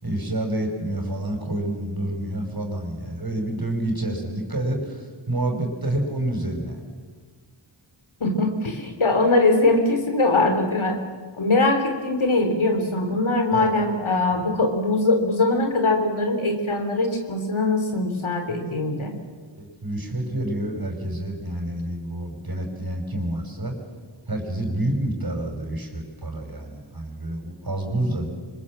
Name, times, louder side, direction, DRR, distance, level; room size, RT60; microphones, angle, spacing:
voice 1, 0.0-6.8 13.5-13.7 19.6-23.7 24.3-28.3, right 1 dB, 45° right, 3 dB, 5.6 m, -28 dB
voice 2, 8.2-11.0 11.4-19.1, left 2 dB, 70° left, 4 dB, 3.6 m, -22 dB
25.0 x 21.5 x 7.5 m, 1.5 s
cardioid pair, 40°, 50 cm